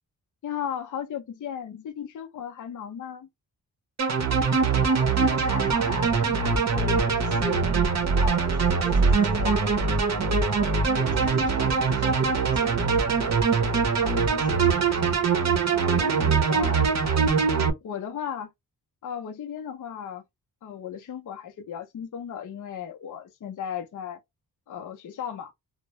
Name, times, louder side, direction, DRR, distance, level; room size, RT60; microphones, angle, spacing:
voice 1, 0.4-3.3 15.7-17.2 17.8-18.5 19.0-20.2 20.6-24.2 24.7-25.5, left 8 dB, 50° left, 0.5 m, -36 dB
sound 1, 4.0-17.7, right 5 dB, 45° right, 0.6 m, -23 dB
voice 2, 4.9-12.8 13.1-14.8 15.8-16.1, left 2 dB, 10° right, 0.8 m, -39 dB
2.2 x 2.0 x 2.8 m
cardioid pair, 85°, 39 cm